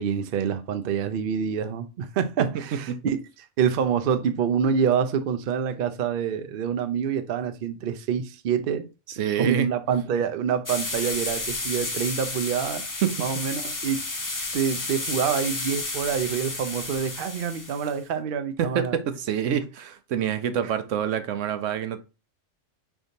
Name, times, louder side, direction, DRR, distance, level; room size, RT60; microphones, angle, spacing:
voice 1, 0.0-3.2 3.6-8.9 9.4-12.8 13.2-14.0 14.5-19.0, right 7 dB, 55° right, 0.6 m, -26 dB
voice 2, 9.1-9.7 13.0-13.1 18.6-22.0, right 9 dB, 75° right, 1.0 m, -26 dB
sound 1, 10.6-17.9, left 2 dB, 25° left, 0.5 m, -32 dB
5.3 x 3.5 x 2.6 m
omnidirectional pair, 1.3 m